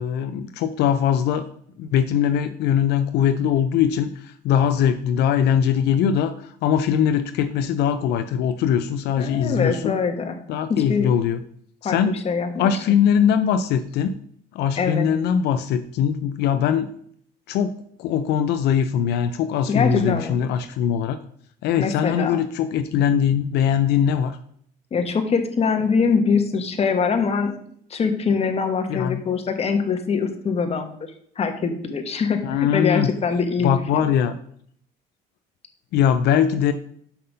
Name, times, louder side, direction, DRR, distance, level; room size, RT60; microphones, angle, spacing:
voice 1, 0.0-1.5 1.8-9.9 10.5-11.4 11.8-12.1 12.6-14.1 14.5-16.9 17.5-21.2 21.6-24.4 28.9-29.2 32.4-33.1 33.6-34.3 35.9-36.7, left 8 dB, 80° left, 9 dB, 0.5 m, -21 dB
voice 2, 9.2-10.4 10.7-11.1 11.8-12.7 14.8-15.1 19.7-20.4 21.8-22.4 24.9-27.5 27.9-30.9 31.4-34.0, left 5 dB, 35° left, 6 dB, 1.3 m, -23 dB
5.8 x 5.5 x 6.5 m, 0.64 s
cardioid pair, 110°, 17 cm